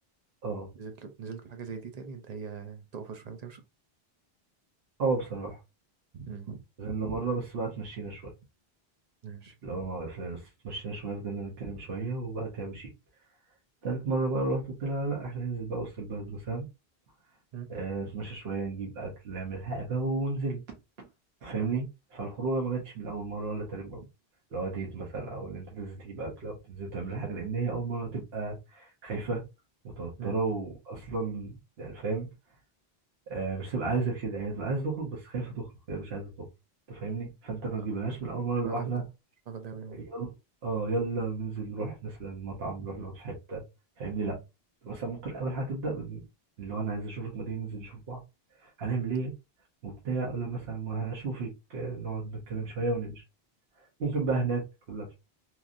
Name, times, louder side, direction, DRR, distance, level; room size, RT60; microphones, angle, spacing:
voice 1, 0.7-3.6 6.1-6.6 9.2-9.6 17.5-17.7 24.0-24.1 30.2-30.4 37.8-37.9 38.6-39.0 39.5-40.1 44.2-44.4, right 6 dB, 50° right, 0.5 m, -41 dB
voice 2, 5.0-5.6 6.8-8.3 9.6-12.9 13.8-16.7 17.7-20.6 21.0-21.1 21.4-24.0 24.5-29.4 30.0-32.3 33.3-36.5 36.9-39.0 40.1-40.3 40.6-43.6 44.0-44.4 44.8-46.3 46.6-48.2 48.6-49.3 49.8-53.2 54.0-55.1, right 3 dB, 75° right, 1.1 m, -33 dB
3.1 x 2.5 x 2.4 m
omnidirectional pair, 1.0 m